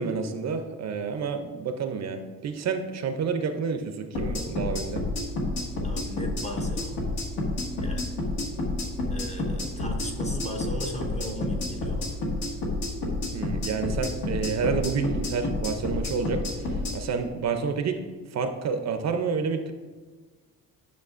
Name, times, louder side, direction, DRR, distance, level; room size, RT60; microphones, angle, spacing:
voice 1, 0.0-5.0 13.3-18.0 18.3-19.7, right 5 dB, 45° right, 7 dB, 0.5 m, -29 dB
sound 1, 4.1-17.0, left 2 dB, 85° left, 1.7 m, -29 dB
voice 2, 5.8-7.0 7.8-8.2 9.1-12.2, equal, 20° left, 2 dB, 0.5 m, -38 dB
10.5 x 6.3 x 2.4 m, 1.4 s
cardioid pair, 175°, 38 cm